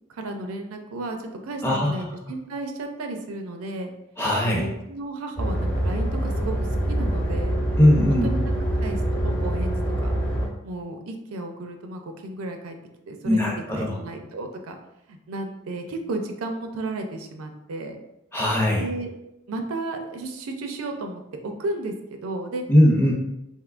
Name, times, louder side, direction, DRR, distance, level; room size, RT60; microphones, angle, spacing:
voice 1, 0.1-3.9 4.4-7.6 8.1-10.1 10.6-12.8 13.1-14.8 15.1-18.0 18.7-19.1 19.5-22.6, right 2 dB, 75° right, 5 dB, 0.4 m, -33 dB
voice 2, 1.6-1.9 4.2-4.7 7.8-8.3 13.2-14.0 18.3-18.9 22.7-23.1, left 1 dB, 10° left, -3 dB, 0.5 m, -19 dB
sound 1, 5.4-10.5, right 1 dB, 40° left, 0.9 m, -25 dB
3.5 x 2.7 x 2.4 m, 0.90 s
head